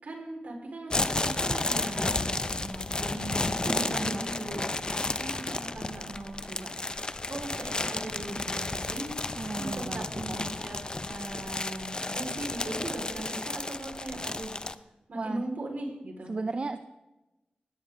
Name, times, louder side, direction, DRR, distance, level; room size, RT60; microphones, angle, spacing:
voice 1, 0.0-6.7 7.3-9.1 9.4-14.5 15.1-16.3, right 2 dB, 65° right, 1 dB, 4.6 m, -39 dB
sound 1, 0.9-14.7, left 2 dB, 30° left, 0.7 m, -32 dB
voice 2, 3.7-4.3 9.4-10.4 15.1-15.4 16.3-16.8, right 3 dB, 40° right, 9 dB, 0.7 m, -34 dB
21.5 x 17.0 x 3.8 m, 1.0 s
wide cardioid pair, 90°, 3 cm